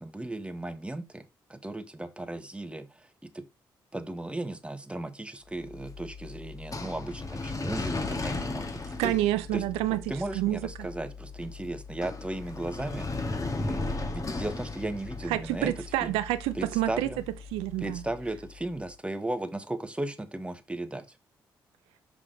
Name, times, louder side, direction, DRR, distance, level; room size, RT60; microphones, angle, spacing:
voice 1, 0.0-3.5 3.9-9.1 9.5-9.6 9.9-13.1 13.6-15.7 16.0-16.1 16.5-17.2 17.8-21.2, right 1 dB, 10° right, 1.2 m, -36 dB
sound 1, 5.6-18.7, left 3 dB, 35° left, 1.4 m, -37 dB
voice 2, 9.0-10.0 10.3-10.9 15.3-17.1 17.5-18.0, right 15 dB, 90° right, 0.4 m, -28 dB
6.0 x 4.9 x 3.8 m
supercardioid pair, 50°, 10 cm